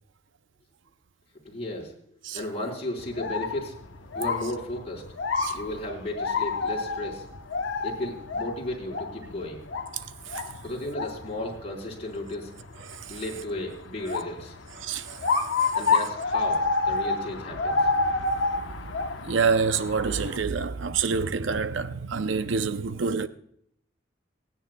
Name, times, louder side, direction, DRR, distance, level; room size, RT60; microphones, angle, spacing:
voice 1, 1.4-1.9 2.3-3.8 4.1-5.0 5.5-7.2 7.8-9.6 10.6-12.5 13.1-14.6 15.7-17.8, left 1 dB, 30° left, 4.5 m, -34 dB
sound 1, 3.0-20.4, left 4 dB, 70° left, 1.0 m, -30 dB
voice 2, 9.9-10.5 12.8-13.2 14.7-15.8 18.3-23.3, right 5 dB, 70° right, 0.6 m, -28 dB
27.5 x 9.9 x 2.3 m
head